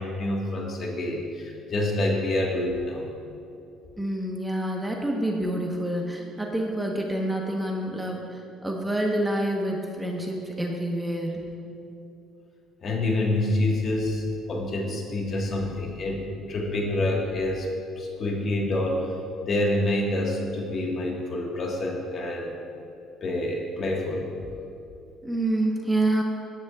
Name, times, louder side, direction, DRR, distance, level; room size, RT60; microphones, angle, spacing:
voice 1, 0.0-3.1 12.8-17.7 18.0-19.1 19.4-22.5 23.2-24.3, left 1 dB, 45° left, 0 dB, 1.6 m, -27 dB
voice 2, 4.0-11.4 25.2-26.2, right 1 dB, 10° right, 0 dB, 1.2 m, -27 dB
17.5 x 10.5 x 2.4 m, 2.7 s
cardioid pair, 100°, 0 cm